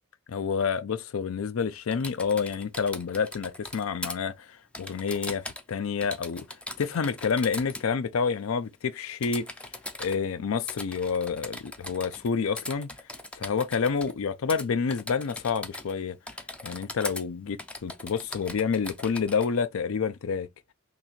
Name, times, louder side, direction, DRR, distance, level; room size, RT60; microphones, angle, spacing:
voice 1, 0.3-6.4 6.8-9.5 10.0-12.9 13.4-16.2 16.6-20.5, left 5 dB, 65° left, 0.4 m, -28 dB
Typing, 1.9-4.2 4.7-5.7 6.0-7.9 9.2-10.2 10.7-12.3 12.6-14.1 14.5-14.6 14.9-16.0 16.3-17.2 17.6-19.5, left 2 dB, 5° left, 0.4 m, -40 dB
3.0 x 2.8 x 4.1 m
head